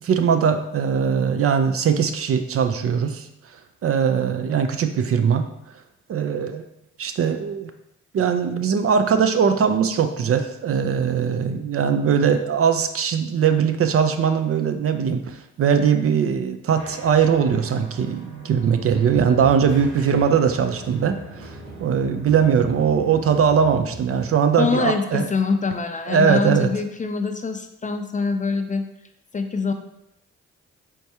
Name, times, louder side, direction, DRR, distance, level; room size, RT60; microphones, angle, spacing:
voice 1, 0.1-3.3 3.8-5.5 6.1-6.6 7.0-7.7 8.1-21.6 21.8-25.3 26.1-26.7, right 7 dB, 45° right, 8 dB, 0.5 m, -20 dB
sound 1, 16.8-24.3, right 2 dB, 70° right, 1.3 m, -40 dB
voice 2, 24.5-28.9 29.3-29.7, left 4 dB, 25° left, 6 dB, 0.5 m, -24 dB
4.5 x 3.5 x 2.8 m, 0.82 s
hypercardioid pair, 45°, 31 cm